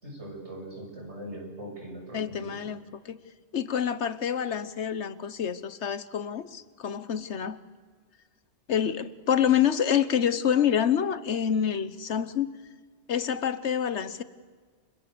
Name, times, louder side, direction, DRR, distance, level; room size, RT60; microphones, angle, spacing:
voice 1, 0.0-2.7, right 1 dB, 85° right, 0 dB, 7.7 m, -41 dB
voice 2, 2.1-3.2 3.5-7.6 8.7-12.5 13.1-14.2, left 8 dB, 85° left, 14 dB, 1.4 m, -27 dB
29.0 x 25.5 x 6.8 m, 1.5 s
omnidirectional pair, 1.1 m